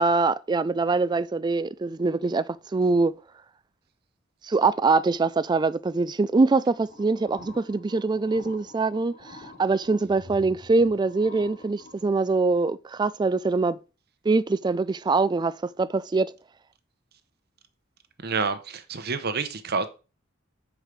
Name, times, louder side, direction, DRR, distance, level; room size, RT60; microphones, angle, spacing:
voice 1, 0.0-3.1 4.4-13.8 14.3-16.3, right 3 dB, 20° right, 0.3 m, -23 dB
sound 1, 6.7-12.1, left 2 dB, 50° left, 3.0 m, -47 dB
voice 2, 18.2-19.9, right 4 dB, 50° right, 0.8 m, -28 dB
6.2 x 4.8 x 5.1 m
head